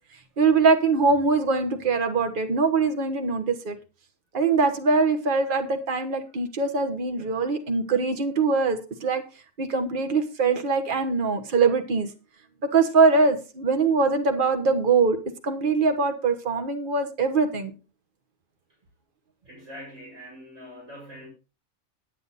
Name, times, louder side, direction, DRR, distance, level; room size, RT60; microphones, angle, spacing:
voice 1, 0.4-3.8 4.3-9.2 9.6-12.1 12.6-15.2 15.4-17.7, right 4 dB, 45° right, 7 dB, 1.4 m, -22 dB
voice 2, 19.4-21.3, equal, 85° right, -2 dB, 6.0 m, -43 dB
9.8 x 9.0 x 4.1 m, 0.31 s
omnidirectional pair, 1.3 m